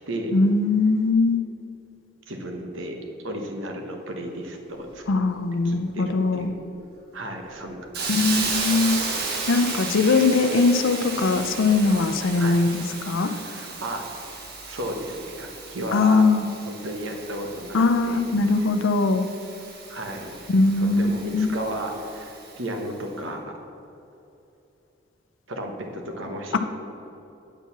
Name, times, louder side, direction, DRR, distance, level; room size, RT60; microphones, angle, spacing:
voice 1, 0.3-1.4 5.1-6.5 8.1-9.0 9.5-13.3 15.9-16.4 17.7-19.3 20.5-21.5 26.5-26.6, left 3 dB, 80° left, 8 dB, 0.5 m, -21 dB
voice 2, 2.3-2.9 3.2-5.0 5.6-6.5 7.1-8.6 9.1-9.2 12.4-12.6 12.9-14.0 14.7-16.3 16.7-17.8 18.0-18.2 19.9-20.4 20.8-23.4 25.5-26.6, right 1 dB, 80° right, 3 dB, 1.1 m, -34 dB
Hiss, 7.9-22.7, right 3 dB, 50° right, 1.1 m, -34 dB
7.9 x 4.6 x 6.8 m, 2.8 s
head